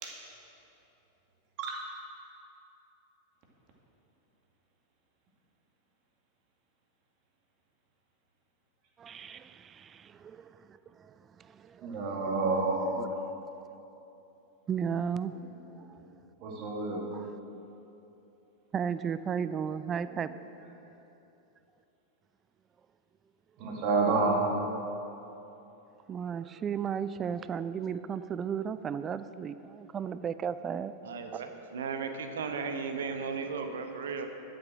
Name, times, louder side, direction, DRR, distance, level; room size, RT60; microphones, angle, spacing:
voice 1, 9.0-12.3 13.0-13.3 14.7-15.3 17.1-17.3 18.7-20.3 26.1-30.9, right 7 dB, 25° right, 14 dB, 0.4 m, -35 dB
voice 2, 11.8-12.9 16.4-17.0 23.6-24.4, right 3 dB, 40° right, -1 dB, 2.3 m, -29 dB
voice 3, 31.0-34.3, right 5 dB, 60° right, 6 dB, 1.0 m, -35 dB
12.0 x 8.0 x 6.2 m, 3.0 s
figure-of-eight pair, 90°, 0 cm